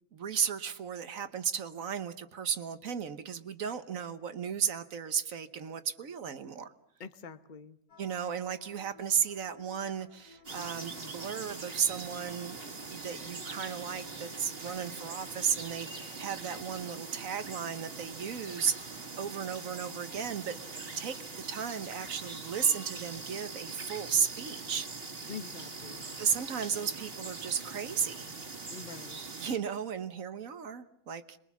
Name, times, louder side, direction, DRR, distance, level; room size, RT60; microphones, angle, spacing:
voice 1, 0.1-6.7 8.0-18.9 19.1-21.2 21.5-24.9 26.2-28.3 29.4-31.4, right 7 dB, 65° right, 11 dB, 1.5 m, -34 dB
voice 2, 7.0-7.8 25.3-26.1 28.7-29.2, left 6 dB, 35° left, 10 dB, 1.1 m, -45 dB
sound 1, 7.9-16.9, left 2 dB, 85° left, 2.2 m, -57 dB
sound 2, 10.4-29.5, right 3 dB, 40° right, 2.1 m, -43 dB
27.0 x 22.0 x 7.2 m, 0.74 s
omnidirectional pair, 1.5 m